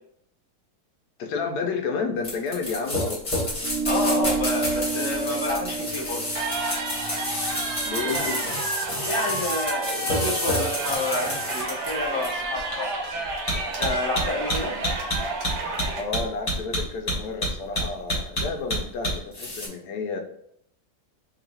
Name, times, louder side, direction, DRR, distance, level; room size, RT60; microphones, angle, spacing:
voice 1, 1.2-3.2 7.8-8.5 16.0-20.2, left 4 dB, 75° left, 3 dB, 1.1 m, -31 dB
sound 1, 2.2-19.7, left 1 dB, 25° left, 1.0 m, -29 dB
sound 2, 3.6-8.4, right 4 dB, 60° right, 0.9 m, -30 dB
voice 2, 3.8-6.2 8.1-8.4 9.0-12.9 13.8-14.8, left 2 dB, 20° right, -7 dB, 0.8 m, -29 dB
sound 3, 6.3-16.0, right 3 dB, 80° right, 1.5 m, -31 dB
3.0 x 2.8 x 4.0 m, 0.68 s
omnidirectional pair, 1.8 m